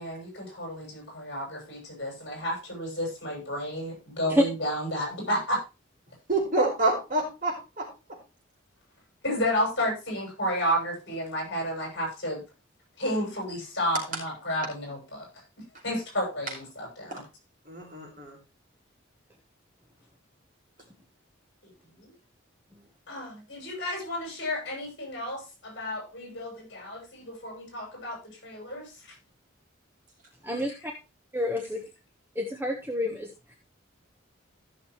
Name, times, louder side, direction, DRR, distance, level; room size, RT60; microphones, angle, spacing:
voice 1, 0.0-5.6 9.2-12.4 13.0-15.3 15.8-17.2 22.0-22.1 23.1-28.9, equal, 55° left, 0 dB, 6.8 m, -31 dB
voice 2, 6.3-8.2 17.1-17.2 17.7-18.4, right 2 dB, 40° right, -1 dB, 4.8 m, -28 dB
voice 3, 30.4-30.9 31.3-31.8 32.3-33.6, left 1 dB, 10° right, 2 dB, 1.1 m, -28 dB
15.0 x 6.5 x 3.1 m, 0.28 s
head